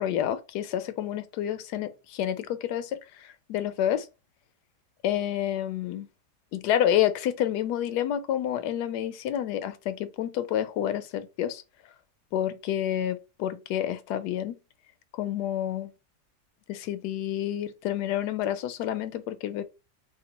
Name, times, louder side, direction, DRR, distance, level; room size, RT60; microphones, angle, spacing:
voice 1, 0.0-4.1 5.0-6.1 6.5-11.6 12.3-14.5 15.1-15.9 16.7-19.6, left 11 dB, 80° left, 1.1 m, -29 dB
3.6 x 2.3 x 4.0 m
omnidirectional pair, 1.8 m